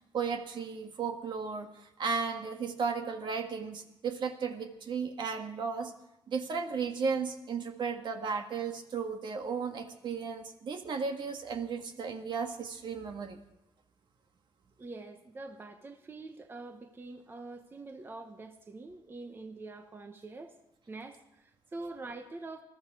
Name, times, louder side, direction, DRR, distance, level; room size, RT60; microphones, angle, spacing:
voice 1, 0.1-5.9 6.3-13.4, right 5 dB, 55° right, 5 dB, 1.6 m, -35 dB
voice 2, 14.8-20.6 20.9-22.6, right 3 dB, 25° right, 6 dB, 1.0 m, -45 dB
21.0 x 13.5 x 4.8 m, 0.89 s
wide cardioid pair, 145°, 9 cm